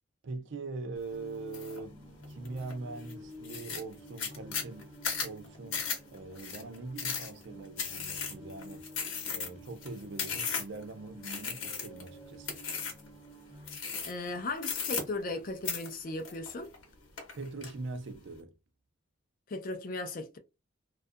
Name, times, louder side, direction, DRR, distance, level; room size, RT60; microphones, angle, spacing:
voice 1, 0.2-2.0 2.3-8.9 9.3-12.6 17.3-18.5, right 3 dB, 60° right, 0.4 m, -42 dB
sound 1, 1.1-13.8, equal, ahead, 1.0 m, -51 dB
sound 2, 1.5-1.8 2.2-2.7 3.1-3.2 3.4-10.8 11.2-12.1 12.4-13.1 13.6-14.3 14.6-15.4 15.6-16.8 17.2-17.7, left 6 dB, 85° left, 1.0 m, -36 dB
voice 2, 14.0-16.7 19.5-20.4, left 2 dB, 40° left, 0.4 m, -37 dB
2.3 x 2.3 x 2.6 m
head